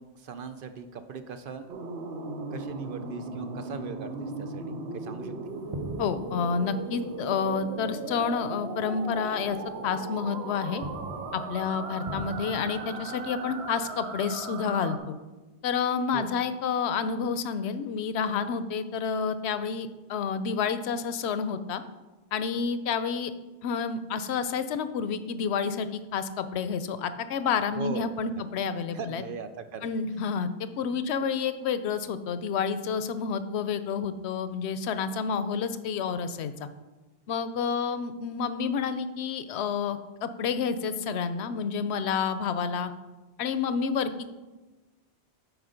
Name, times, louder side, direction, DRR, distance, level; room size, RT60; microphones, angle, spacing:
voice 1, 0.0-1.8 2.5-5.3 16.1-16.3 27.8-28.1 28.9-29.9, right 6 dB, 60° right, 9 dB, 0.6 m, -39 dB
sound 1, 1.7-15.0, right 3 dB, 75° right, 1.0 m, -37 dB
sound 2, 5.5-8.5 8.7-9.0 9.5-10.3 10.6-14.8, right 1 dB, 30° right, 0.8 m, -43 dB
voice 2, 6.0-9.6 9.8-10.8 11.3-15.2 15.6-21.8 22.3-23.3 23.6-29.2 29.8-36.7 37.3-42.9 43.4-44.3, left 6 dB, 80° left, 12 dB, 0.8 m, -29 dB
8.1 x 4.8 x 5.0 m, 1.2 s
omnidirectional pair, 1.1 m